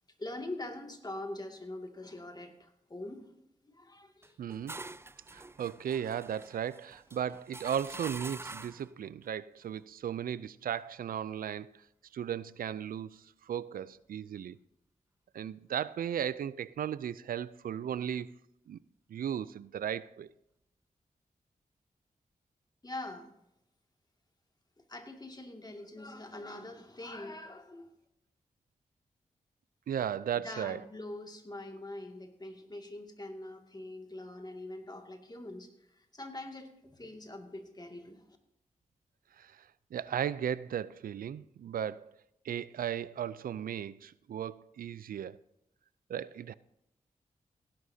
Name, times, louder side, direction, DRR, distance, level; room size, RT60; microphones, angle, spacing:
voice 1, 0.2-3.3 3.6-4.4 7.2-7.3 22.8-23.3 24.9-27.9 30.3-38.2, left 2 dB, 25° left, 2.3 m, -43 dB
sound 1, 4.2-8.9, right 2 dB, 15° right, 0.4 m, -46 dB
voice 2, 4.4-4.8 5.3-11.7 12.1-14.6 15.3-18.3 18.7-18.8 19.1-20.3 29.9-30.8 39.4-39.5 39.9-42.1 42.4-45.4 46.1-46.5, right 9 dB, 75° right, 0.5 m, -36 dB
17.5 x 11.5 x 2.8 m
cardioid pair, 50°, 15 cm